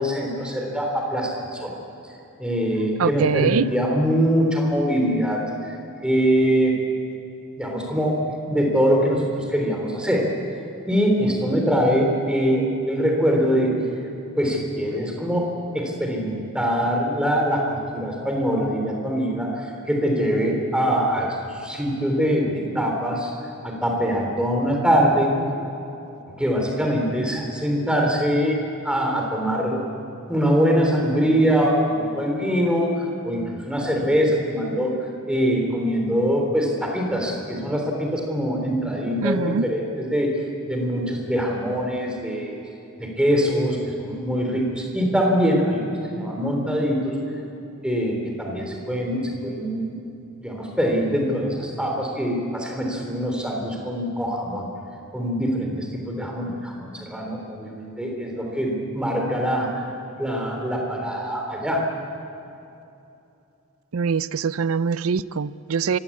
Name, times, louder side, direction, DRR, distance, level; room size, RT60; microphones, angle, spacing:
voice 1, 0.0-1.7 2.4-5.4 5.7-5.8 6.0-6.8 7.6-10.2 10.9-13.7 14.4-15.5 15.7-23.3 23.6-25.3 26.4-28.6 28.8-29.8 30.3-32.9 33.2-34.9 35.3-40.3 40.7-42.5 43.0-47.1 47.8-50.0 50.4-54.7 55.1-59.8 60.2-61.8, equal, 5° right, 0 dB, 3.5 m, -23 dB
voice 2, 3.0-3.7 39.2-39.6 63.9-66.0, right 6 dB, 75° right, 17 dB, 0.5 m, -23 dB
24.5 x 16.0 x 8.5 m, 2.8 s
head